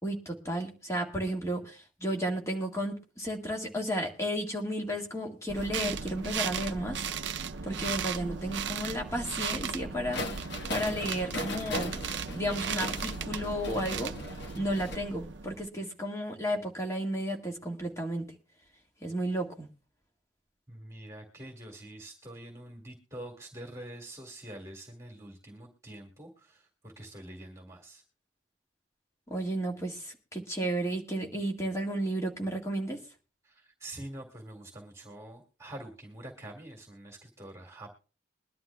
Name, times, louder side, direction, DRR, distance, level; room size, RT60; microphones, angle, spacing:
voice 1, 0.0-7.0 7.6-10.2 10.7-11.9 12.3-14.1 14.6-18.3 19.0-19.7 29.3-33.0, right 1 dB, 15° left, 1 dB, 1.8 m, -33 dB
sound 1, 5.5-15.7, right 6 dB, 65° right, 0.6 m, -36 dB
sound 2, 10.1-15.0, left 1 dB, 60° left, 1.3 m, -38 dB
voice 2, 20.7-28.0 33.4-37.9, right 1 dB, 15° right, 1 dB, 2.1 m, -46 dB
22.0 x 11.0 x 2.3 m, 0.35 s
head